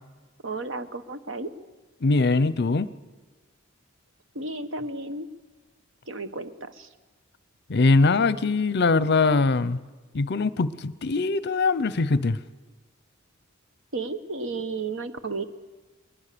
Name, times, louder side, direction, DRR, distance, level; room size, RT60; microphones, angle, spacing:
voice 1, 0.4-1.5 4.3-5.3 6.1-6.9 13.9-15.4, right 3 dB, 70° right, 10 dB, 1.1 m, -33 dB
voice 2, 2.0-2.9 7.7-9.8 10.1-12.4, left 3 dB, 55° left, 17 dB, 0.7 m, -22 dB
21.0 x 21.0 x 6.8 m, 1.3 s
head